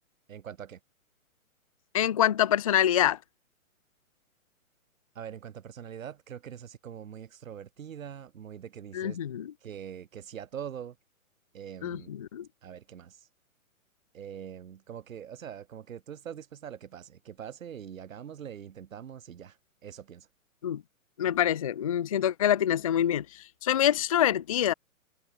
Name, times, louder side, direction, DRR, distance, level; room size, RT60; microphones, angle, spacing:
voice 1, 0.3-0.8 5.1-9.2 9.6-11.0 11.5-12.2 12.6-13.3 14.1-20.3, right 9 dB, 70° right, 2.9 m, -43 dB
voice 2, 1.9-3.2 8.9-9.5 11.8-12.5 20.6-20.8 21.2-24.7, left 11 dB, 25° left, 0.5 m, -26 dB
hypercardioid pair, 155°, 42 cm